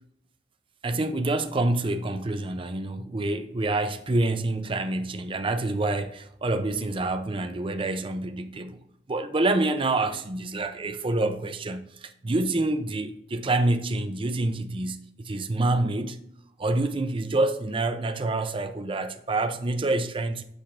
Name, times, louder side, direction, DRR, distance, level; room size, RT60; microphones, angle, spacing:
voice 1, 0.8-8.8 9.1-16.2 16.6-20.4, right 2 dB, 30° right, 0.5 m, -27 dB
8.5 x 5.1 x 2.5 m
head